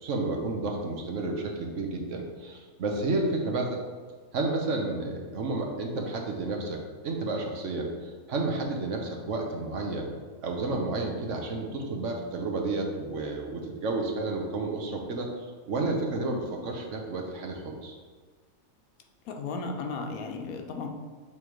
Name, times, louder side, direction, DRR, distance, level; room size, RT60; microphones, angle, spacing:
voice 1, 0.0-3.8 4.3-10.1 10.4-17.9, right 2 dB, 60° right, 1 dB, 1.2 m, -31 dB
voice 2, 19.3-20.9, left 4 dB, 90° left, 4 dB, 1.2 m, -35 dB
7.2 x 3.3 x 4.6 m, 1.5 s
omnidirectional pair, 1.5 m